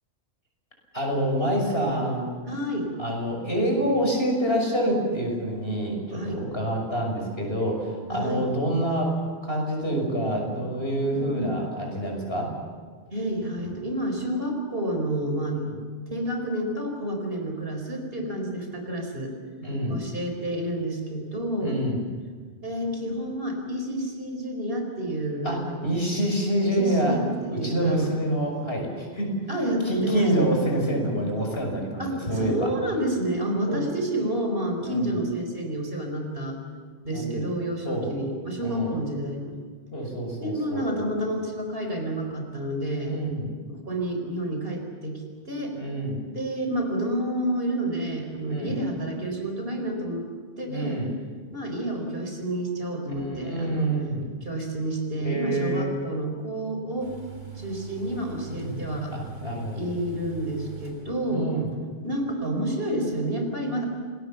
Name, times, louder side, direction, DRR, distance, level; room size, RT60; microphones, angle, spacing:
voice 1, 0.9-2.3 3.0-12.5 15.5-15.8 19.6-20.1 21.6-22.0 25.4-27.2 27.5-29.3 29.8-32.7 33.7-33.9 34.8-35.1 37.1-37.5 37.8-38.2 38.6-39.0 39.9-41.0 43.0-43.5 45.7-46.3 48.5-48.8 50.7-51.1 53.1-54.3 55.2-55.9 58.5-58.8 59.1-60.0 61.3-61.7, right 1 dB, 55° left, 1 dB, 6.4 m, -27 dB
voice 2, 2.5-2.9 6.1-6.4 8.1-8.5 11.1-11.6 13.1-15.6 16.1-19.3 19.9-21.8 22.6-25.7 26.6-28.1 29.5-30.3 32.0-36.6 37.0-39.6 40.4-43.1 43.7-45.8 46.3-50.3 50.6-51.0 51.5-53.9 54.4-57.1 57.5-59.1 59.7-61.5 62.0-63.9, right 1 dB, 50° right, 3 dB, 4.7 m, -29 dB
sound 1, 57.0-61.5 61.7-61.8, right 6 dB, 90° right, 3.9 m, -42 dB
27.5 x 20.0 x 7.2 m, 1.5 s
omnidirectional pair, 1.2 m